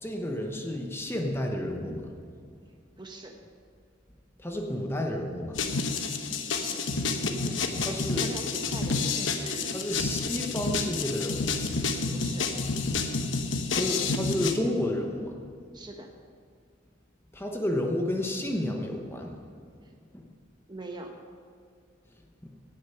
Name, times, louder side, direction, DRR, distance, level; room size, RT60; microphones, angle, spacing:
voice 1, 0.0-2.0 4.4-5.6 7.8-8.2 9.7-11.6 13.7-15.3 17.3-19.4 20.1-20.3, left 1 dB, 10° left, 2 dB, 1.0 m, -31 dB
voice 2, 3.0-3.4 6.5-6.9 7.2-9.7 12.1-12.5 15.7-16.1 19.8-19.9 20.7-21.2, right 1 dB, 25° right, 3 dB, 1.0 m, -42 dB
sound 1, 5.5-14.5, left 4 dB, 75° left, 1.0 m, -29 dB
17.5 x 6.7 x 5.7 m, 2.2 s
head